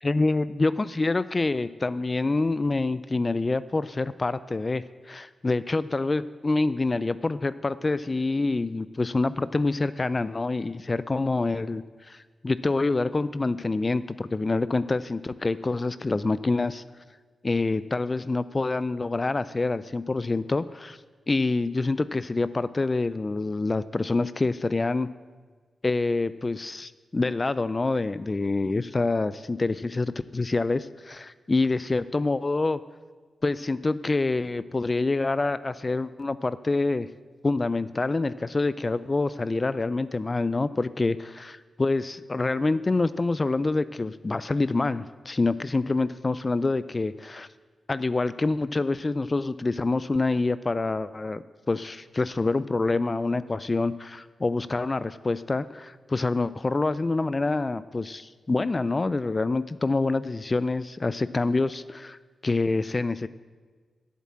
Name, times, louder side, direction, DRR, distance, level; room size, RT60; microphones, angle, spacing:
voice 1, 0.0-16.8 17.4-21.0 21.3-25.1 25.8-32.8 33.4-37.1 37.4-47.5 47.9-63.3, left 3 dB, 30° left, 15 dB, 0.3 m, -26 dB
8.3 x 7.4 x 8.6 m, 1.4 s
wide cardioid pair, 90°, 0 cm